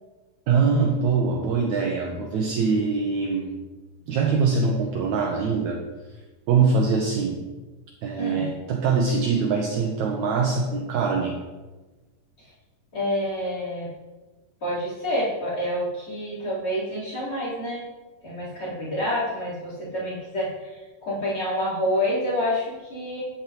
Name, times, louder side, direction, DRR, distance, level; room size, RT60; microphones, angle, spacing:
voice 1, 0.5-3.6 4.1-5.8 6.5-7.4 8.0-11.4, right 5 dB, 70° right, 1 dB, 2.0 m, -23 dB
voice 2, 12.9-13.9 14.6-17.8 18.2-23.2, left 1 dB, 40° left, -6 dB, 4.7 m, -28 dB
12.5 x 10.5 x 3.1 m, 1.2 s
omnidirectional pair, 3.8 m